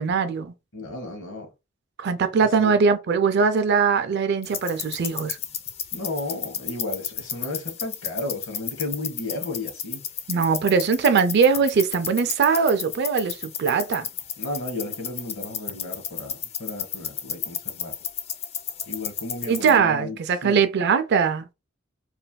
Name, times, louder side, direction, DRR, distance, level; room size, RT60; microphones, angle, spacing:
voice 1, 0.0-0.5 2.0-5.4 10.3-14.1 19.5-21.4, right 5 dB, 55° right, 0.4 m, -21 dB
voice 2, 0.7-1.5 2.6-2.7 5.9-10.0 14.4-17.9 18.9-20.6, left 2 dB, 75° left, 1.1 m, -33 dB
sound 1, 4.4-19.8, left 9 dB, 30° left, 0.3 m, -33 dB
3.1 x 2.5 x 2.2 m
head